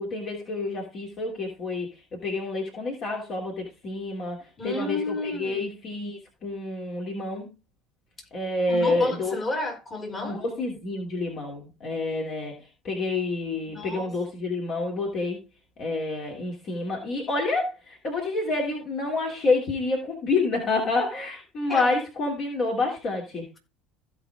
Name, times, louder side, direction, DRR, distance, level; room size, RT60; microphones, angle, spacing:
voice 1, 0.0-1.9 2.2-7.5 8.3-9.4 10.2-15.4 15.8-23.5, left 3 dB, 45° left, 3.0 m, -28 dB
voice 2, 4.6-5.7 8.7-10.4 13.7-14.1 21.7-21.9, left 2 dB, 25° left, 4.1 m, -32 dB
16.0 x 5.4 x 3.7 m
figure-of-eight pair, 65°, 0 cm